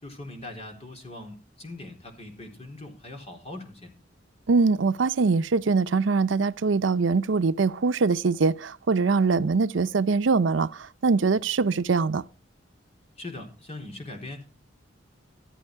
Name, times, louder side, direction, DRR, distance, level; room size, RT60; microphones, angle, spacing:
voice 1, 0.0-3.9 13.2-14.5, left 2 dB, 35° left, 3.8 m, -41 dB
voice 2, 4.5-12.2, right 4 dB, 80° right, 0.6 m, -23 dB
13.5 x 12.0 x 4.7 m
head